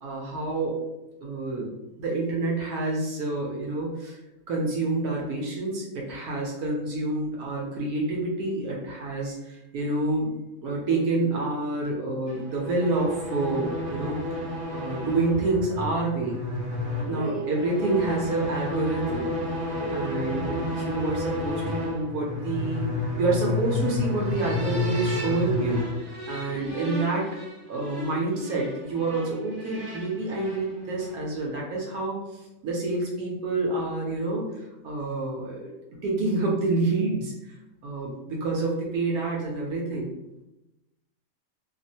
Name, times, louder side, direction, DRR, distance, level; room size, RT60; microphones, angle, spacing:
voice 1, 0.0-0.8 1.2-1.7 2.0-4.2 4.5-10.3 10.6-14.4 14.7-16.4 17.1-19.3 19.9-22.9 23.2-25.8 26.3-27.3 27.7-35.7 36.0-37.3 37.8-40.1, right 2 dB, 70° right, -2 dB, 1.0 m, -28 dB
sound 1, 12.3-31.3, left 1 dB, 50° right, 1.1 m, -31 dB
voice 2, 17.0-17.5 19.8-20.5 26.5-26.9, right 2 dB, 60° left, -7 dB, 0.7 m, -35 dB
2.8 x 2.0 x 2.6 m, 0.96 s
omnidirectional pair, 1.8 m